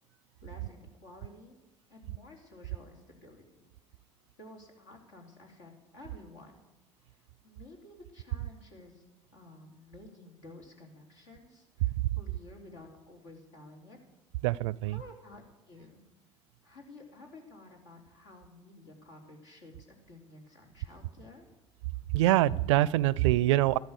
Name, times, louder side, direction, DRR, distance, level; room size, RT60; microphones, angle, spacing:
voice 1, 0.4-1.6 1.9-3.7 4.4-6.7 7.1-9.0 9.3-14.0 14.8-16.0 16.6-21.5, left 2 dB, 80° left, 0 dB, 3.9 m, -52 dB
voice 2, 14.4-14.9 22.1-23.8, right 15 dB, 75° right, 23 dB, 0.4 m, -24 dB
14.0 x 12.5 x 6.7 m, 1.1 s
hypercardioid pair, 65°, 15 cm